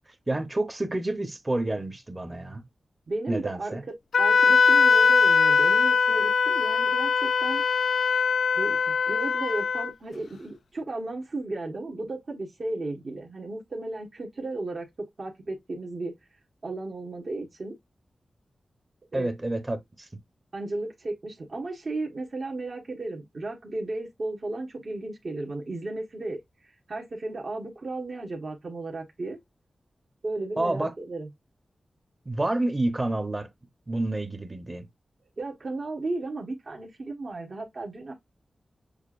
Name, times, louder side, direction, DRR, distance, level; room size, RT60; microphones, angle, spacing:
voice 1, 0.3-2.7 3.3-3.8 19.1-20.1 30.6-30.9 32.2-33.5 33.9-34.8, right 2 dB, 25° right, 0.9 m, -29 dB
voice 2, 3.1-7.6 8.5-16.1 16.6-17.8 19.1-19.3 20.5-29.4 30.2-31.3 35.4-38.1, right 2 dB, 55° right, 1.3 m, -34 dB
Wind instrument woodwind instrument, 4.1-9.9, left 5 dB, 85° left, 0.3 m, -21 dB
6.6 x 2.4 x 2.5 m
wide cardioid pair, 95°, 0 cm